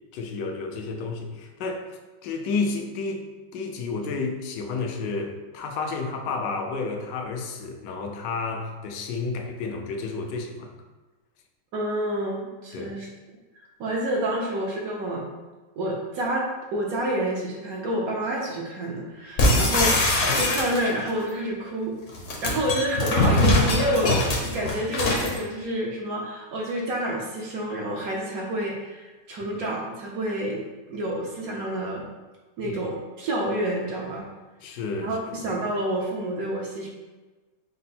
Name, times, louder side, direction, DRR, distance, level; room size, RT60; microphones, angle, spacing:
voice 1, 0.0-3.3 3.5-10.8 12.7-13.0 32.6-32.8 34.6-35.4, left 4 dB, 75° left, 3 dB, 1.2 m, -31 dB
voice 2, 11.7-13.1 13.6-15.2 15.8-21.9 22.4-32.0 32.6-34.2 35.0-36.9, right 1 dB, 65° right, -2 dB, 1.0 m, -28 dB
sound 1, 19.4-21.1 22.1-25.4, left 2 dB, 55° left, 1.0 m, -22 dB
5.3 x 2.0 x 4.1 m, 1.2 s
omnidirectional pair, 1.9 m